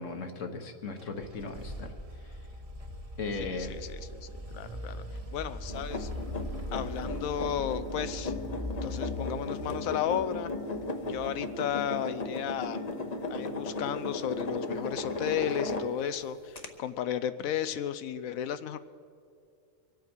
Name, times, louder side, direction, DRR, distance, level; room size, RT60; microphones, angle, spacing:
voice 1, 0.0-1.9 3.2-3.7, left 3 dB, 65° left, 5 dB, 1.6 m, -37 dB
sound 1, 1.0-11.8, left 1 dB, 30° right, 1.1 m, -41 dB
voice 2, 3.4-5.0 5.3-6.1 6.7-8.4 8.8-10.5 11.0-12.8 13.3-18.8, left 10 dB, 80° left, 12 dB, 1.0 m, -34 dB
sound 2, 5.7-16.2 16.6-16.7, left 2 dB, 35° left, 0.9 m, -36 dB
23.5 x 8.4 x 6.1 m, 2.4 s
omnidirectional pair, 1.4 m